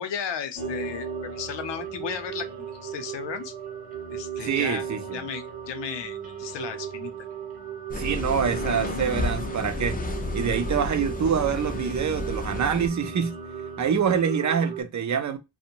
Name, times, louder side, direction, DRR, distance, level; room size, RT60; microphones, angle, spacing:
voice 1, 0.0-3.5 4.1-4.8 5.1-7.1, left 7 dB, 85° left, 0.6 m, -35 dB
sound 1, 0.6-14.2, left 1 dB, 20° right, 0.8 m, -42 dB
Creepy Soundscape, 0.6-14.8, right 10 dB, 85° right, 0.7 m, -37 dB
voice 2, 4.4-5.2 7.9-10.0 10.3-13.4 13.8-15.4, right 7 dB, 45° right, 0.4 m, -25 dB
sound 2, 7.9-12.9, left 2 dB, 20° left, 0.4 m, -32 dB
2.5 x 2.1 x 2.8 m
wide cardioid pair, 140°, 42 cm